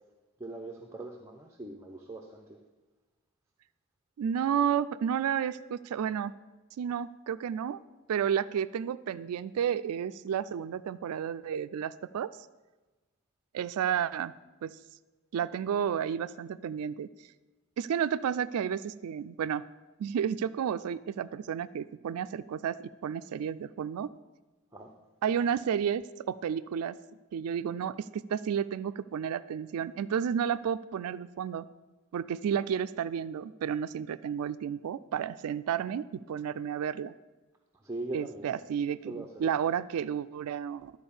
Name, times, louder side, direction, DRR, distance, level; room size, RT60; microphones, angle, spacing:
voice 1, 0.4-2.6 24.7-24.9 37.7-38.5 39.1-39.5, right 2 dB, 15° right, 1 dB, 0.7 m, -41 dB
voice 2, 4.2-6.3 6.8-7.8 8.1-12.3 13.5-14.3 14.6-14.7 15.3-17.1 17.8-19.6 20.0-24.1 25.2-26.9 27.3-31.7 32.1-37.1 38.1-40.9, right 8 dB, 90° right, 13 dB, 0.3 m, -31 dB
12.0 x 4.6 x 7.0 m, 1.2 s
head